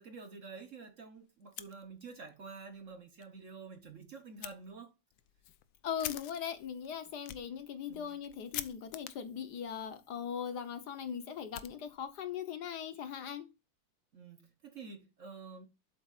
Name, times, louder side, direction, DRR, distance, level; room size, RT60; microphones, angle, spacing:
voice 1, 0.0-4.9 7.9-8.1 14.1-15.7, right 4 dB, 50° right, 1.2 m, -49 dB
Fire, 1.4-2.3 2.7-2.8 3.2-3.3 4.4-4.5 5.1-12.3, left 13 dB, 85° left, 1.4 m, -48 dB
voice 2, 5.8-13.5, left 8 dB, 65° left, 1.5 m, -40 dB
8.2 x 7.7 x 2.4 m
omnidirectional pair, 2.1 m